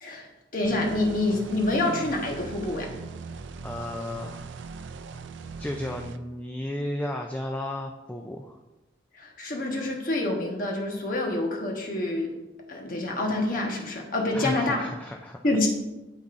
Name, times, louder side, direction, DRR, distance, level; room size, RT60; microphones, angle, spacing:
voice 1, 0.0-2.9 9.1-12.3 12.7-14.9 15.4-15.7, left 2 dB, 50° left, 0 dB, 1.2 m, -27 dB
sound 1, 0.6-6.2, right 5 dB, 80° right, 0.4 m, -40 dB
voice 2, 3.6-4.4 5.6-8.6 14.3-15.4, left 1 dB, 10° left, 2 dB, 0.3 m, -33 dB
12.0 x 4.0 x 2.5 m, 1.0 s
head